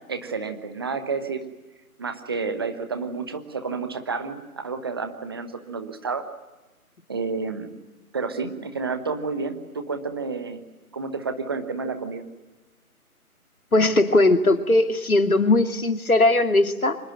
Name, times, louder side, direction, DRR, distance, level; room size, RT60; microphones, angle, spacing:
voice 1, 0.1-1.4 2.0-6.2 7.1-7.7 8.1-10.6 10.9-12.2, right 4 dB, 15° right, 8 dB, 1.1 m, -30 dB
voice 2, 13.7-17.0, left 2 dB, 70° left, 8 dB, 2.7 m, -19 dB
25.0 x 21.5 x 9.2 m, 1.1 s
figure-of-eight pair, 155°, 45 cm